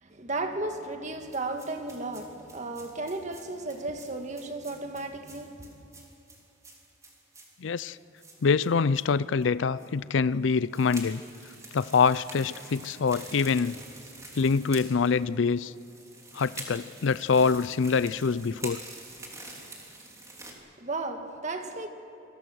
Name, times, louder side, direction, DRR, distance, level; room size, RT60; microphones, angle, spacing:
voice 1, 0.0-5.8 20.8-21.9, right 2 dB, 40° right, 1.6 m, -34 dB
sound 1, 1.3-9.1 9.4-9.5 9.8-9.9 10.5-20.5, right 2 dB, 15° right, 3.1 m, -47 dB
voice 2, 7.6-8.0 8.4-11.2 11.7-13.8 14.4-15.7 16.3-18.8, left 5 dB, 70° left, 0.5 m, -25 dB
27.0 x 22.0 x 6.3 m
head